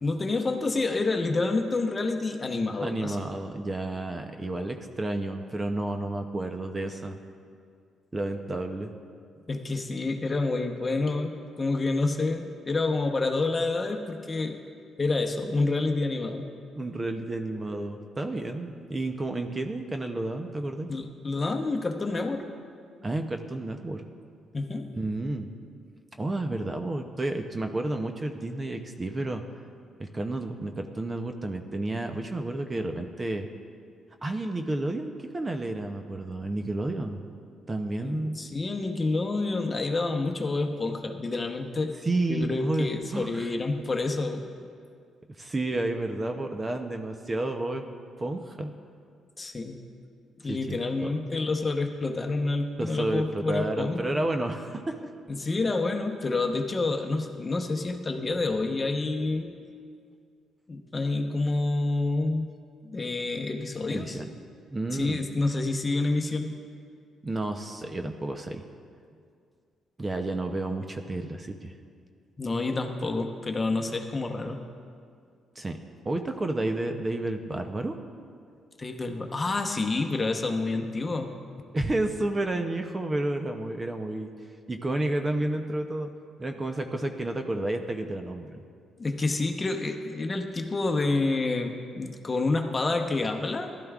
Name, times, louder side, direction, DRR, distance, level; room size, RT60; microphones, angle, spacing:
voice 1, 0.0-3.2 9.5-14.6 15.0-16.5 20.9-22.5 24.5-24.9 38.0-41.9 42.3-44.4 49.4-49.8 50.4-54.2 55.3-59.5 60.7-62.5 62.8-64.2 64.9-66.5 72.4-74.6 78.8-81.3 89.0-93.7, left 3 dB, 30° left, 4 dB, 0.9 m, -28 dB
voice 2, 2.8-7.2 8.1-8.9 16.7-20.9 23.0-24.0 24.9-25.5 26.2-29.4 30.0-33.5 34.2-37.3 37.7-38.4 42.0-43.5 45.4-47.8 48.2-48.7 50.4-50.8 51.0-51.1 52.8-55.0 63.9-64.3 64.7-65.2 67.2-68.6 70.0-71.7 75.6-75.8 76.0-78.0 81.7-84.3 84.7-86.1 86.4-88.6, right 2 dB, 25° right, 5 dB, 0.7 m, -31 dB
15.0 x 12.0 x 2.4 m, 2.2 s
cardioid pair, 90°, 0 cm